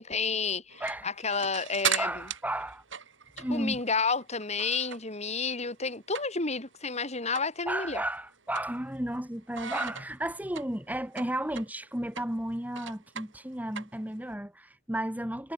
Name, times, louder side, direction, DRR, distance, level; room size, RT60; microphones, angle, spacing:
voice 1, 0.0-2.1 3.5-8.0, left 4 dB, 35° left, 7.5 m, -31 dB
sound 1, 0.7-5.2 5.5-6.6 6.9-7.0 7.3-7.6 7.9-9.2 9.5-14.3, right 8 dB, 90° right, 6.2 m, -37 dB
voice 2, 0.8-1.1 2.0-2.8 3.4-3.8 7.7-15.5, right 1 dB, 10° right, 2.4 m, -33 dB
head